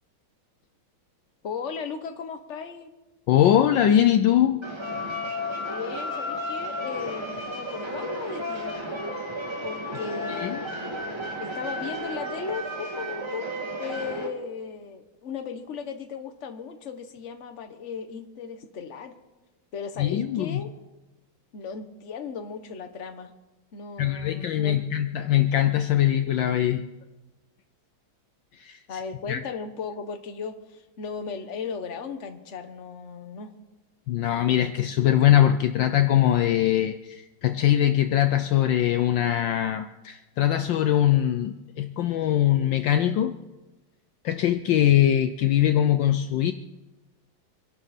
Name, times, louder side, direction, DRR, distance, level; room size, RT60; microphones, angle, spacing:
voice 1, 1.4-2.9 5.6-8.7 9.6-10.9 11.4-13.5 13.8-19.1 19.7-20.7 21.5-23.3 23.7-24.8 28.9-33.5, left 6 dB, 40° left, 7 dB, 1.3 m, -36 dB
voice 2, 3.3-4.6 10.3-10.6 20.0-20.7 24.0-26.8 28.6-29.0 29.3-29.4 34.1-43.3 44.2-46.5, left 11 dB, 70° left, 9 dB, 1.3 m, -22 dB
sound 1, 4.6-14.3, left 1 dB, 15° right, 2.0 m, -33 dB
25.0 x 12.0 x 4.3 m, 1.1 s
omnidirectional pair, 2.3 m